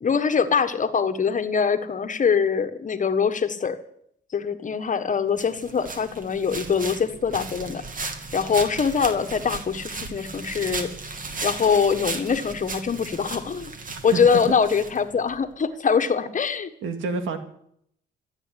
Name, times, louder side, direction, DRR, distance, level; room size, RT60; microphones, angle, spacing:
voice 1, 0.0-3.8 4.3-7.8 8.3-10.9 11.4-13.7 14.0-16.7, left 6 dB, 40° left, 9 dB, 1.5 m, -23 dB
sound 1, 5.4-15.4, right 3 dB, 45° right, 2.5 m, -36 dB
voice 2, 13.9-14.4 16.8-17.4, right 4 dB, 85° right, 8 dB, 2.2 m, -29 dB
15.0 x 8.9 x 9.9 m, 0.70 s
cardioid pair, 90°, 20 cm